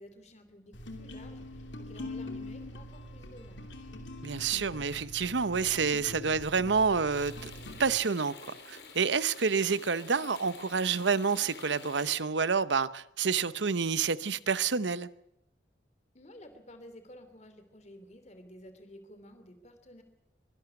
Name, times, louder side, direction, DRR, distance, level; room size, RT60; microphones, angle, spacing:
voice 1, 0.0-3.6 16.1-20.0, left 1 dB, 40° left, 2.9 m, -52 dB
sound 1, 0.7-8.0, left 1 dB, 90° left, 2.7 m, -43 dB
voice 2, 4.2-7.5 7.8-15.1, right 5 dB, 80° right, 0.8 m, -28 dB
sound 2, 7.1-12.2, left 4 dB, 65° left, 4.1 m, -49 dB
23.5 x 12.0 x 9.8 m
head